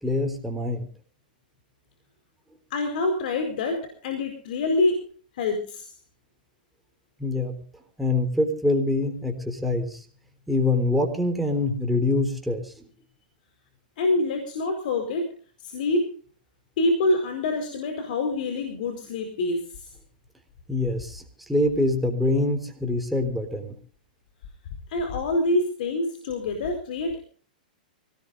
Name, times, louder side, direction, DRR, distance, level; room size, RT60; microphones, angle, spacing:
voice 1, 0.0-0.9 7.2-7.6 8.0-10.0 10.5-12.7 20.7-21.2 21.5-23.7, left 2 dB, ahead, 2 dB, 4.0 m, -25 dB
voice 2, 2.7-5.0 5.3-5.9 14.0-15.3 15.6-16.2 16.8-19.9 24.9-27.2, left 2 dB, 65° left, 6 dB, 4.7 m, -26 dB
25.5 x 18.0 x 2.6 m, 0.42 s
hypercardioid pair, 130°, 5 cm